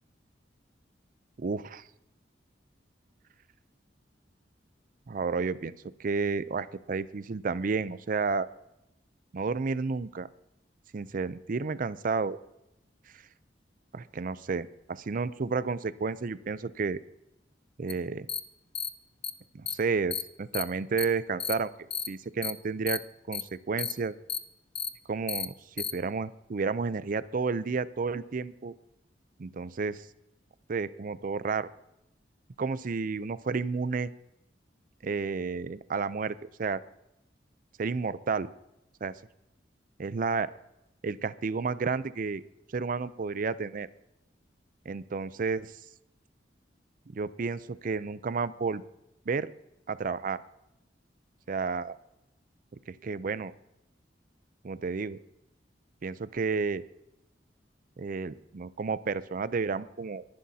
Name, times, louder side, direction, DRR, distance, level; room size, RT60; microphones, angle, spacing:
voice 1, 1.4-1.8 5.1-5.7 6.0-8.5 9.3-10.3 10.9-12.4 13.9-17.0 17.8-18.3 19.5-21.7 22.1-23.0 23.3-24.1 25.1-28.7 29.4-30.0 30.7-31.7 32.6-34.1 35.0-36.8 37.8-38.5 39.0-39.1 40.0-40.5 41.0-42.4 42.7-43.9 44.9-45.7 47.1-48.8 49.3-49.5 49.9-50.4 51.5-52.0 52.9-53.5 54.6-55.2 56.0-56.8 58.0-60.2, right 4 dB, 50° right, 16 dB, 0.5 m, -31 dB
sound 1, 17.9-18.0 18.3-18.4 18.7-18.9 19.2-19.3 19.7-19.8 20.1-20.2 20.5-20.6 21.0-21.1 21.4-21.5 21.9-22.1 22.4-22.5 22.9-23.0 23.3-23.4 23.8-23.9 24.3-24.4 24.7-24.9 25.3-25.4 25.8-25.9, left 8 dB, 30° left, 0.7 m, -32 dB
21.5 x 11.5 x 2.8 m, 0.87 s
head